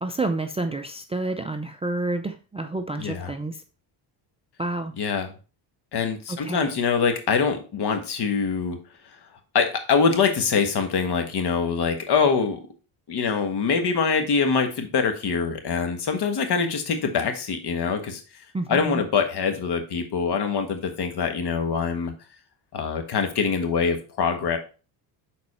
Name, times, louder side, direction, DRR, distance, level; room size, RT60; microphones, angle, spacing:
voice 1, 0.0-3.6 4.6-4.9 6.3-6.7 18.5-19.0, right 2 dB, 15° right, 7 dB, 0.4 m, -29 dB
voice 2, 3.0-3.3 5.0-5.3 5.9-8.8 9.5-12.6 13.1-18.2 18.7-22.1 22.7-24.6, left 5 dB, 55° left, 6 dB, 1.5 m, -24 dB
6.7 x 4.2 x 4.1 m, 0.35 s
cardioid pair, 100°, 48 cm